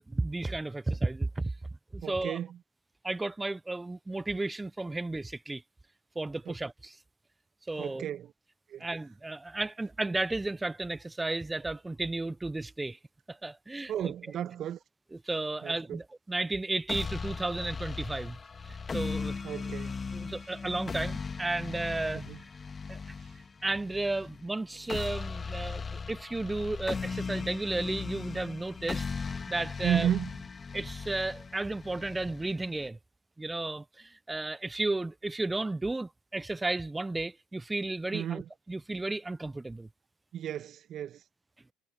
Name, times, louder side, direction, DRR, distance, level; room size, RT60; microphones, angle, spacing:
voice 1, 0.0-1.5 1.9-2.4 3.0-5.6 6.2-7.0 7.7-8.0 8.8-13.0 13.3-14.1 15.2-18.4 18.6-19.4 20.1-22.2 22.9-23.0 23.6-25.8 26.1-30.1 30.7-33.0 33.4-38.4 38.7-39.9, right 2 dB, 15° right, 0.8 m, -33 dB
voice 2, 2.0-2.6 7.8-8.3 8.7-8.9 13.9-14.8 15.6-16.0 19.4-20.0 22.1-22.4 23.2-23.3 29.8-30.3 38.1-38.5 40.3-41.2, right 10 dB, 50° right, 1.9 m, -33 dB
sound 1, 16.9-32.9, left 5 dB, 30° left, 2.7 m, -38 dB
hypercardioid pair, 70°, 0 cm